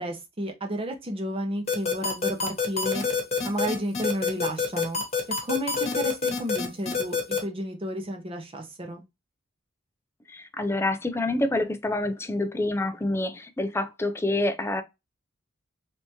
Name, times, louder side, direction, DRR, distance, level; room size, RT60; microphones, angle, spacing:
voice 1, 0.0-3.0 3.4-5.0 5.4-9.0, equal, 30° right, 0.8 m, -32 dB
sound 1, 1.7-7.4, left 5 dB, 35° left, 1.2 m, -26 dB
voice 2, 10.3-14.8, left 2 dB, 10° left, 0.4 m, -27 dB
3.4 x 2.8 x 2.7 m
head